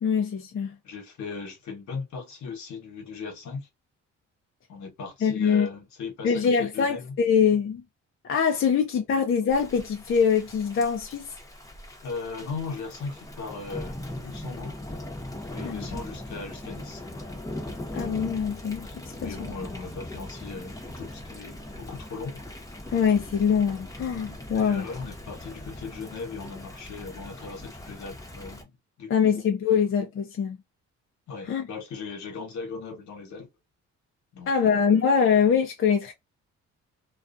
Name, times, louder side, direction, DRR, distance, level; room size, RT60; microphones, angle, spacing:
voice 1, 0.0-0.7 5.2-5.7 6.2-7.8 8.2-11.3 15.6-15.8 17.9-18.9 19.2-19.5 22.9-24.9 29.1-30.6 31.5-31.7 34.5-36.1, left 6 dB, 45° left, 0.6 m, -23 dB
voice 2, 0.8-3.7 4.7-7.1 12.0-14.8 15.5-17.0 19.1-22.5 24.5-29.4 31.3-33.5 34.3-35.0, left 4 dB, 65° left, 1.1 m, -38 dB
Thunder / Rain, 9.5-28.6, left 1 dB, 10° left, 0.9 m, -40 dB
2.4 x 2.3 x 2.5 m
cardioid pair, 90°, 30 cm